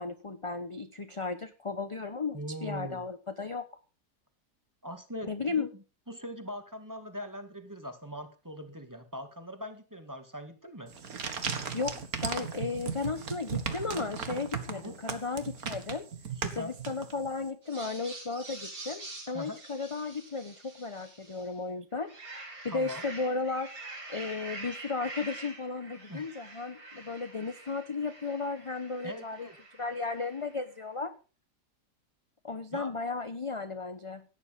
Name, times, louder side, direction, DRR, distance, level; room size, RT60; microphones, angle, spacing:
voice 1, 0.0-3.7 5.2-5.7 11.7-16.1 16.6-22.1 22.6-23.7 24.1-29.5 29.8-31.1 32.4-34.2, left 4 dB, 25° left, 10 dB, 0.8 m, -35 dB
voice 2, 2.3-3.0 4.8-5.7 6.1-10.9 14.7-15.0 16.4-16.7 19.3-19.6 22.7-23.0 26.1-26.3 29.0-29.6 32.7-32.9, equal, 10° right, 8 dB, 1.8 m, -41 dB
sound 1, 10.9-17.4, right 6 dB, 65° right, 2.2 m, -37 dB
sound 2, 17.6-21.5 21.9-30.6, right 2 dB, 90° right, 5.3 m, -46 dB
17.0 x 10.0 x 5.2 m, 0.35 s
omnidirectional pair, 1.7 m